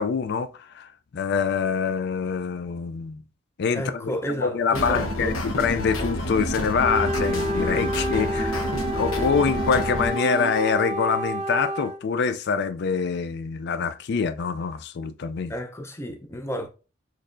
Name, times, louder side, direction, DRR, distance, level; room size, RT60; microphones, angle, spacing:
voice 1, 0.0-3.2 3.6-8.6 8.9-15.5, left 5 dB, 55° left, 0.4 m, -25 dB
voice 2, 3.7-5.3 15.5-16.7, equal, 15° left, 0.6 m, -32 dB
sound 1, 4.7-10.7, equal, 85° left, 0.9 m, -29 dB
Wind instrument woodwind instrument, 6.8-12.0, equal, 35° right, 0.8 m, -29 dB
6.5 x 3.2 x 2.5 m
head